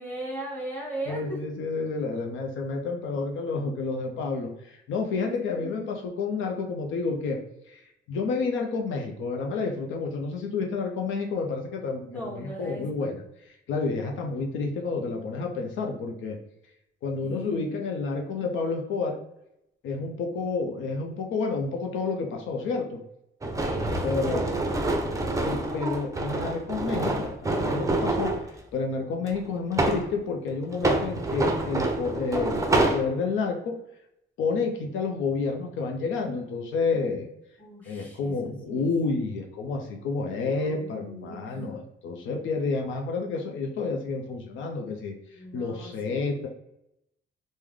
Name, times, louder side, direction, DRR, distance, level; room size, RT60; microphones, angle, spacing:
voice 1, 0.0-1.4 5.2-5.4 5.6-6.0 12.0-13.1 17.2-17.8 23.6-24.9 37.6-38.3 38.7-38.9 40.3-41.7 45.4-46.4, right 1 dB, 10° left, -4 dB, 1.4 m, -39 dB
voice 2, 1.1-7.4 7.7-7.8 8.1-13.1 13.7-16.4 17.0-19.2 19.8-23.0 24.0-24.4 25.4-28.3 28.7-33.7 34.4-37.3 37.9-46.5, left 4 dB, 80° left, 2 dB, 0.6 m, -30 dB
sound 1, 23.4-28.4 29.3-30.1 30.7-33.0, right 2 dB, 15° right, 0.5 m, -27 dB
3.6 x 2.1 x 3.1 m, 0.82 s
cardioid pair, 90°, 20 cm